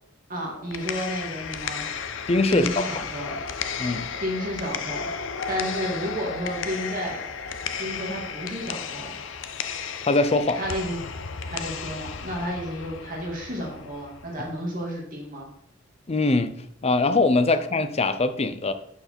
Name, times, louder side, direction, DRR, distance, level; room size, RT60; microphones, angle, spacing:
voice 1, 0.3-1.9 2.5-3.4 4.2-7.2 7.8-9.2 10.6-11.0 11.5-15.5, equal, 45° right, 2.0 m, -32 dB
sound 1, 0.5-14.5, left 6 dB, 70° left, 0.7 m, -34 dB
voice 2, 2.3-2.8 3.8-4.1 10.1-10.6 16.1-18.7, left 2 dB, 30° left, 0.6 m, -22 dB
11.5 x 4.7 x 4.4 m
head